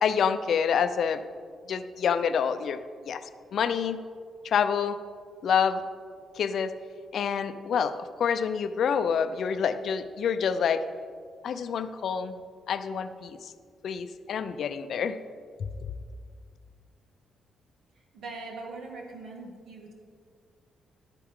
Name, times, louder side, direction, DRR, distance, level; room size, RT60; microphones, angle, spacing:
voice 1, 0.0-1.2 1.7-2.8 3.0-3.2 3.5-4.0 4.4-5.0 5.4-5.8 6.3-6.7 7.1-10.8 11.4-12.4 12.7-13.5 13.8-15.2 15.6-15.7, left 7 dB, 55° left, 11 dB, 0.5 m, -27 dB
voice 2, 18.1-19.9, right 3 dB, 65° right, 0 dB, 1.9 m, -41 dB
11.5 x 9.3 x 3.7 m, 2.1 s
cardioid pair, 160°, 0 cm